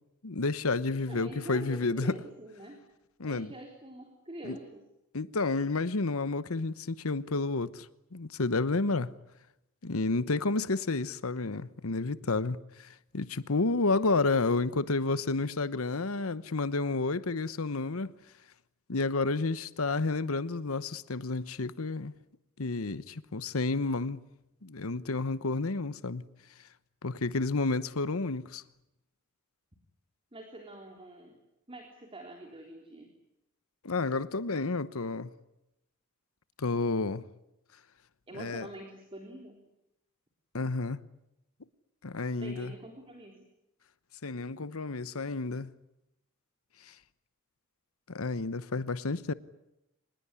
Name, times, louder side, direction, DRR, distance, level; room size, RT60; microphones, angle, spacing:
voice 1, 0.2-2.1 3.2-3.5 4.4-4.6 5.1-7.9 8.1-9.1 9.8-18.1 18.9-22.1 22.6-24.2 24.6-26.2 27.0-28.6 33.8-35.3 36.6-37.2 38.4-38.7 40.5-41.0 42.0-42.7 44.2-45.7 46.8-46.9 48.1-49.3, left 3 dB, 80° left, 1.0 m, -30 dB
voice 2, 1.0-2.8 3.2-4.8 30.3-31.4 31.7-33.1 38.3-39.6 42.4-43.4, right 1 dB, 25° right, 3.6 m, -46 dB
25.5 x 20.5 x 9.7 m
head